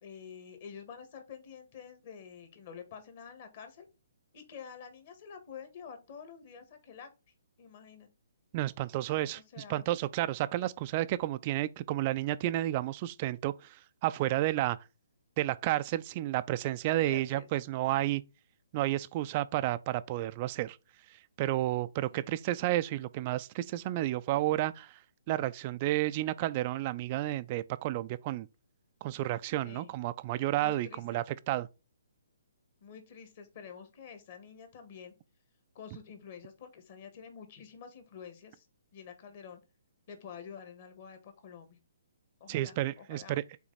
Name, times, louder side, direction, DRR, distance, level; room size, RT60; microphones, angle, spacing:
voice 1, 0.0-3.9 4.3-7.1 7.6-8.1 9.3-9.9 10.6-10.7 17.0-17.5 22.1-22.2 29.6-29.9 30.6-31.2 32.8-35.1 35.7-38.7 38.9-39.6 40.1-41.8 42.4-43.4, left 7 dB, 45° left, 1.8 m, -48 dB
voice 2, 8.5-14.8 15.4-18.2 18.7-20.8 21.4-25.0 25.3-28.5 29.0-31.7 42.5-43.4, right 15 dB, 35° right, 0.3 m, -31 dB
5.8 x 3.9 x 4.1 m
hypercardioid pair, 140°, 0 cm